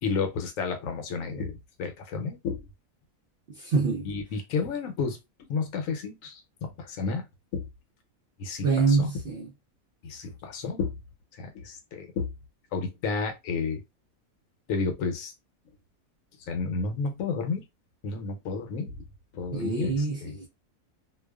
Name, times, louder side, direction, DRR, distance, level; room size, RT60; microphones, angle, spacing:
voice 1, 0.0-2.7 4.0-5.2 5.5-7.2 7.5-7.6 8.4-9.1 10.0-11.0 11.4-12.3 12.7-13.8 14.7-15.3 16.5-17.6 18.0-19.0 19.3-20.4, left 4 dB, 75° left, 1.0 m, -31 dB
voice 2, 3.5-4.1 8.6-9.5 19.5-20.5, right 4 dB, 60° right, 0.7 m, -26 dB
2.4 x 2.3 x 2.2 m
omnidirectional pair, 1.4 m